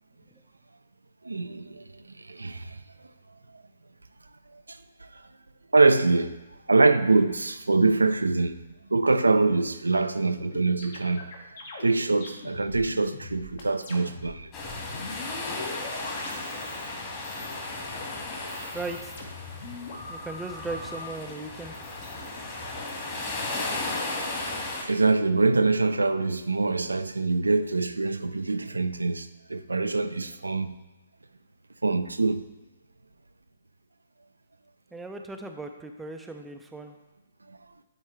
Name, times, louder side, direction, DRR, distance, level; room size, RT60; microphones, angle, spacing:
voice 1, 1.2-2.8 4.5-5.2 5.7-6.4 6.7-8.6 8.9-11.2 11.8-14.5 24.2-24.3 24.8-30.7 31.8-32.4 37.5-37.6, right 3 dB, 80° right, 0.4 m, -24 dB
sound 1, 10.4-16.9 17.2-17.9 18.3-21.1 21.7-22.9, left 3 dB, 55° left, 1.5 m, -42 dB
sound 2, 14.5-24.8, left 2 dB, 25° left, 1.8 m, -35 dB
voice 2, 18.7-19.1 20.1-21.7 34.9-36.9, right 3 dB, 5° right, 0.5 m, -37 dB
10.0 x 4.5 x 3.2 m
figure-of-eight pair, 130°, 0 cm